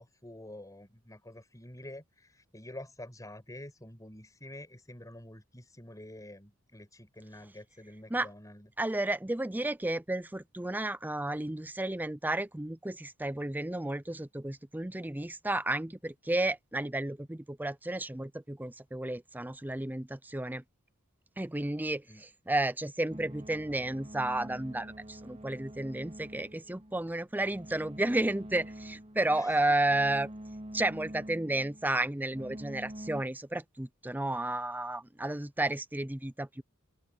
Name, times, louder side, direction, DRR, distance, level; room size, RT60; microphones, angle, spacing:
voice 1, 0.0-8.7 22.1-22.2 29.3-29.7, left 1 dB, 15° left, 5.4 m, -48 dB
voice 2, 8.8-20.6 21.4-30.3 30.7-36.6, right 1 dB, 10° right, 0.6 m, -32 dB
sound 1, 23.1-33.2, right 1 dB, 30° right, 2.8 m, -46 dB
open air
head